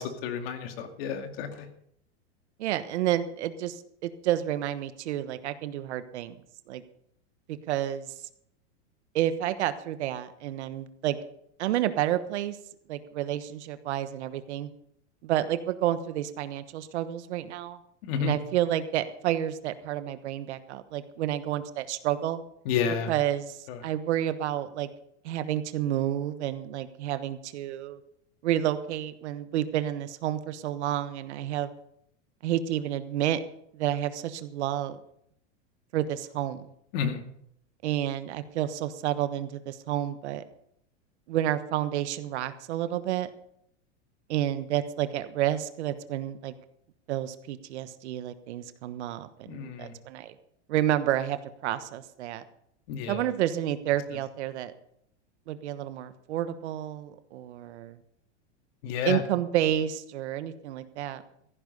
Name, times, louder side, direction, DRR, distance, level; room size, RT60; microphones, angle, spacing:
voice 1, 0.0-1.5 18.0-18.3 22.7-23.1 23.7-23.8 36.9-37.2 49.5-49.9 52.9-53.2 58.8-59.2, left 7 dB, 55° left, 6 dB, 2.3 m, -30 dB
voice 2, 2.6-6.4 6.7-6.8 7.5-8.1 9.1-11.2 11.6-12.6 12.9-14.7 15.2-17.8 18.2-22.4 23.1-24.9 25.2-28.0 28.4-31.7 32.4-33.4 33.7-35.0 35.9-36.7 37.8-40.4 41.3-43.3 44.3-46.5 47.1-50.3 50.7-52.4 53.1-54.7 55.5-58.0 59.0-61.2, right 12 dB, 70° right, 12 dB, 1.3 m, -30 dB
15.0 x 9.7 x 5.5 m, 0.71 s
supercardioid pair, 150°, 35 cm